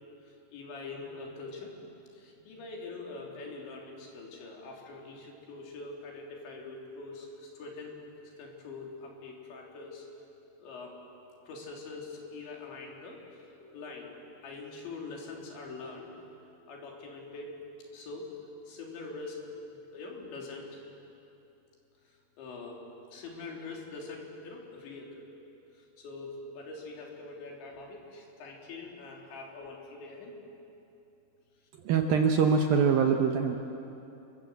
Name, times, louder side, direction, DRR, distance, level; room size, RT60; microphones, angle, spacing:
voice 1, 0.3-1.7 2.1-7.9 8.4-10.1 10.6-11.0 11.5-16.1 16.7-17.6 17.9-18.3 18.7-19.4 19.7-20.8 22.1-22.8 23.1-25.3 25.7-30.3, left 3 dB, 75° left, -1 dB, 5.7 m, -44 dB
voice 2, 31.8-33.5, right 6 dB, 70° right, 4 dB, 2.3 m, -24 dB
29.5 x 22.0 x 8.1 m, 2.8 s
omnidirectional pair, 5.2 m